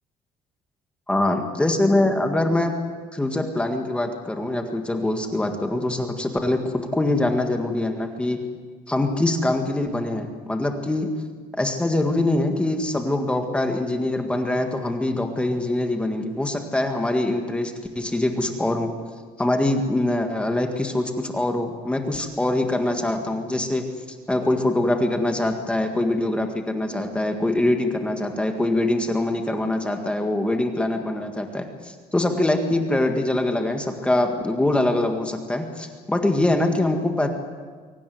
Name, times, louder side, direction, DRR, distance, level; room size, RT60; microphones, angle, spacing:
voice 1, 1.1-2.7 3.1-8.4 8.9-11.1 11.5-18.9 19.4-23.8 24.3-37.3, left 1 dB, 5° left, 4 dB, 1.8 m, -23 dB
23.5 x 18.0 x 9.4 m, 1.5 s
cardioid pair, 175°, 15 cm